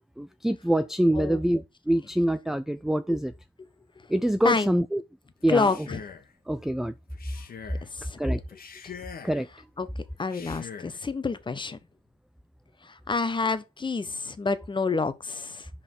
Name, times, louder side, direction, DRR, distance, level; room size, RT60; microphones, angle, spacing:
voice 1, 0.2-3.3 4.1-5.0 5.4-5.7 6.5-6.9 8.2-8.4 9.2-9.5, right 1 dB, ahead, 0.4 m, -25 dB
voice 2, 4.4-4.8 5.5-6.0 7.8-8.2 8.8-8.9 9.8-9.9 10.2-11.8 12.8-15.7, left 4 dB, 25° left, 1.1 m, -28 dB
Male speech man speaking, 5.4-6.3 7.1-7.9 8.5-9.5 10.2-11.0, left 6 dB, 45° left, 1.5 m, -43 dB
5.7 x 5.2 x 5.9 m
cardioid pair, 90°, 20 cm